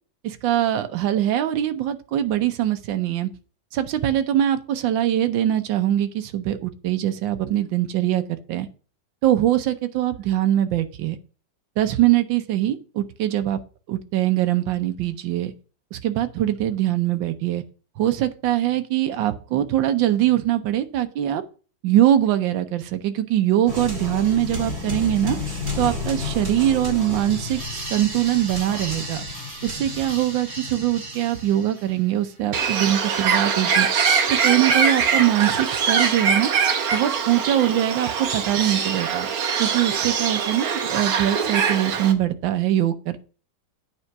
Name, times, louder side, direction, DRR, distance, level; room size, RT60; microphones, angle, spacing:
voice 1, 0.2-3.3 3.7-8.7 9.2-11.2 11.8-13.6 13.9-15.5 15.9-17.6 18.0-21.4 21.8-25.4 25.8-29.2 29.6-33.9 34.3-36.5 36.9-39.3 39.6-43.2, right 12 dB, 80° right, 9 dB, 1.5 m, -22 dB
sound 1, 23.7-32.1, left 2 dB, 35° right, 2.2 m, -31 dB
Bird, 32.5-42.1, right 6 dB, 55° right, 1.4 m, -23 dB
8.8 x 4.4 x 5.8 m, 0.36 s
omnidirectional pair, 2.0 m